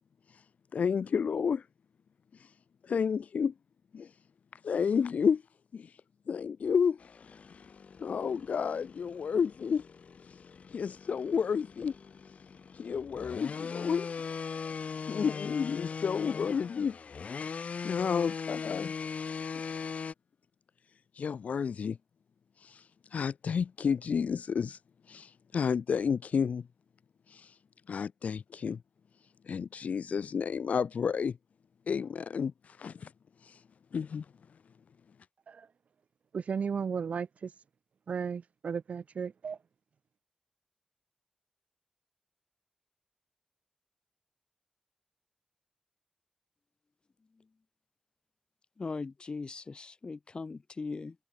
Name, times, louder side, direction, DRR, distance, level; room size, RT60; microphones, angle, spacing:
voice 1, 0.7-1.7 2.4-2.5 2.8-3.5 3.9-4.1 4.6-5.4 5.7-5.9 6.3-7.0 8.0-9.8 10.3-10.4 10.7-11.9 12.7-14.1 15.1-17.0 17.8-18.9 21.1-22.0 22.6-24.8 25.1-26.7 27.3-27.6 27.9-28.8 29.5-31.4 31.9-33.1 33.4-33.6 33.9-34.3, left 6 dB, 85° left, 0.7 m, -31 dB
sound 1, 7.0-20.1, left 5 dB, 70° left, 3.9 m, -40 dB
voice 2, 36.3-37.5 38.1-39.6, right 6 dB, 75° right, 0.6 m, -34 dB
voice 3, 48.8-51.2, left 4 dB, 40° left, 5.6 m, -39 dB
wide cardioid pair, 150°, 2 cm